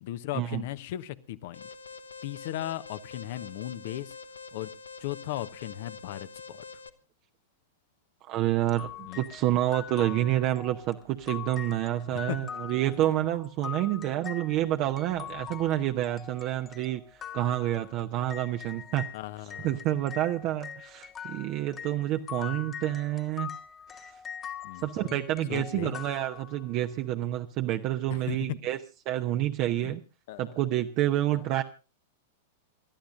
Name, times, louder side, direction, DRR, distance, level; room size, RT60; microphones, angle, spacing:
voice 1, 0.0-1.7 2.2-4.1 4.5-4.7 5.0-6.6 9.0-9.2 12.1-12.4 12.9-13.1 19.1-19.8 24.6-25.2 25.5-26.0 28.1-28.4 29.8-30.0 30.3-30.6 31.3-31.4, left 14 dB, 55° left, 14 dB, 0.9 m, -37 dB
Alarm, 1.5-6.9, left 4 dB, 80° left, 1.0 m, -45 dB
voice 2, 8.3-17.0 17.3-19.0 19.6-23.5 24.0-24.1 24.8-28.8 29.1-30.0 30.4-31.6, right 14 dB, 45° right, 5 dB, 0.8 m, -28 dB
sound 1, 8.7-19.2 19.5-26.9, left 8 dB, 25° left, 1.5 m, -43 dB
28.0 x 13.0 x 2.6 m, 0.31 s
figure-of-eight pair, 95°, 0 cm